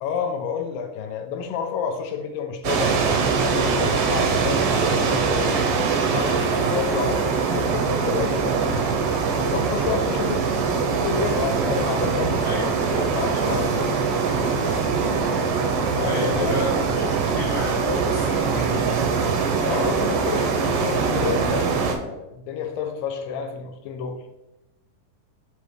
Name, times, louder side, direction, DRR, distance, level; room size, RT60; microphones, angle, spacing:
voice 1, 0.0-3.0 3.4-5.6 6.0-8.8 9.4-10.5 10.9-13.9 15.8-16.5 19.6-24.2, left 6 dB, 80° left, 4 dB, 2.2 m, -30 dB
sound 1, 2.6-22.0, right 5 dB, 85° right, 2.3 m, -22 dB
voice 2, 16.0-19.2, equal, 20° right, -8 dB, 0.7 m, -30 dB
5.7 x 5.2 x 3.2 m, 0.94 s
omnidirectional pair, 4.0 m